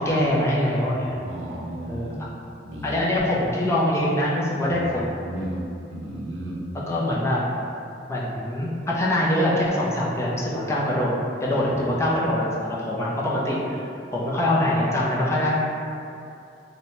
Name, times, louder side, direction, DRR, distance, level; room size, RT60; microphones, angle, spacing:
voice 1, 0.0-1.2 1.8-2.1 2.8-5.2 6.7-7.4 8.1-11.1 11.4-13.8 14.1-15.5, left 1 dB, 15° left, -5 dB, 0.3 m, -24 dB
voice 2, 0.8-2.2 2.6-3.0 4.7-4.9 5.2-6.6 11.7-12.3, right 1 dB, 85° right, -2 dB, 0.4 m, -35 dB
2.6 x 2.1 x 2.9 m, 2.6 s
head